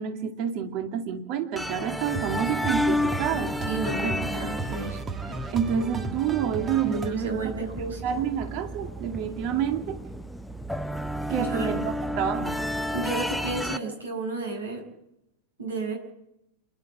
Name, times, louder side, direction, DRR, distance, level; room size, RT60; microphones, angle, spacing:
voice 1, 0.0-3.5 4.0-4.2 5.5-7.5 8.0-10.0 11.3-12.6, right 8 dB, 40° right, 6 dB, 2.3 m, -28 dB
sound 1, 1.6-13.8, left 1 dB, ahead, 0.8 m, -32 dB
sound 2, 2.1-7.1, right 4 dB, 20° right, 1.5 m, -35 dB
voice 2, 3.7-5.0 6.8-8.0 11.4-11.7 12.9-14.8 15.6-16.0, right 3 dB, 70° right, 3 dB, 5.9 m, -32 dB
28.0 x 11.5 x 8.4 m, 0.83 s
figure-of-eight pair, 90°, 0 cm